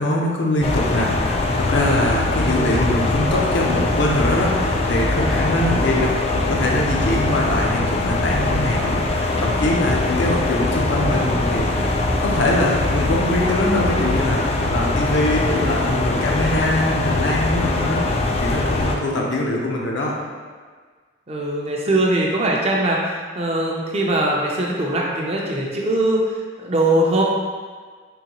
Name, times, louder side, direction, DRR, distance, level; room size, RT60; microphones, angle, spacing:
voice 1, 0.0-6.1 6.4-11.9 12.2-18.1 18.4-20.1, left 1 dB, 70° left, -2 dB, 0.6 m, -23 dB
sound 1, 0.6-19.0, left 2 dB, 30° left, 0.3 m, -22 dB
voice 2, 7.3-7.7 21.3-26.3 26.6-27.2, right 1 dB, 30° right, -2 dB, 0.5 m, -21 dB
3.9 x 3.1 x 2.9 m, 1.5 s
head